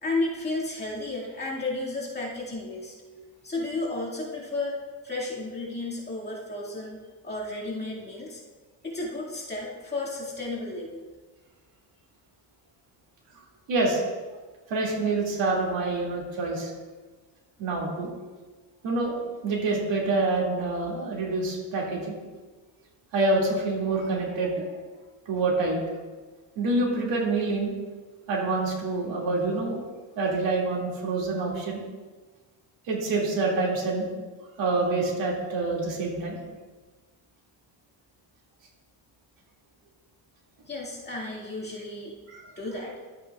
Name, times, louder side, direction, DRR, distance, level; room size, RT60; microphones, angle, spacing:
voice 1, 0.0-2.9 3.4-4.8 5.0-7.0 7.2-8.4 8.8-11.0 40.7-42.1 42.6-43.0, left 2 dB, 20° left, -5 dB, 2.2 m, -33 dB
voice 2, 13.7-14.0 14.7-16.7 17.6-18.1 18.8-19.2 19.4-22.2 23.1-24.7 25.3-25.8 26.6-27.7 28.3-29.8 30.2-31.8 32.9-34.1 34.6-36.4 42.3-42.5, right 3 dB, 75° right, -2 dB, 2.5 m, -26 dB
12.5 x 8.2 x 2.4 m, 1.3 s
cardioid pair, 130°, 46 cm